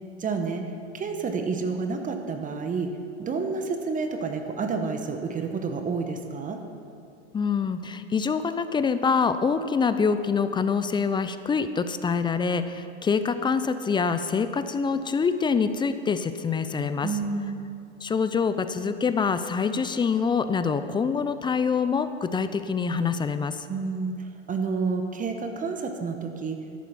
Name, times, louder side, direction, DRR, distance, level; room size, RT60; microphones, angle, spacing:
voice 1, 0.2-0.6 0.9-6.6 17.0-17.6 23.7-26.6, right 4 dB, 25° right, 5 dB, 1.2 m, -29 dB
voice 2, 7.3-17.1 18.0-23.7, left 5 dB, 15° left, 11 dB, 0.5 m, -25 dB
13.0 x 11.5 x 5.7 m, 2.5 s
hypercardioid pair, 105°, 34 cm